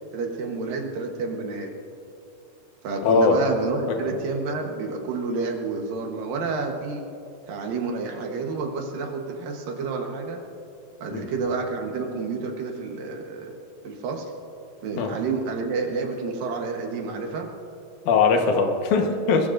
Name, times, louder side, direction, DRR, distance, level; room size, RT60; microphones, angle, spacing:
voice 1, 0.1-1.7 2.8-7.1 7.5-10.4 11.0-13.6 13.8-14.3 14.8-17.5, right 4 dB, 70° right, 2 dB, 2.6 m, -29 dB
voice 2, 3.0-3.4 11.1-11.3 15.0-15.1 18.1-19.5, left 4 dB, 65° left, 3 dB, 2.3 m, -20 dB
23.0 x 22.0 x 2.6 m, 2.7 s
omnidirectional pair, 4.6 m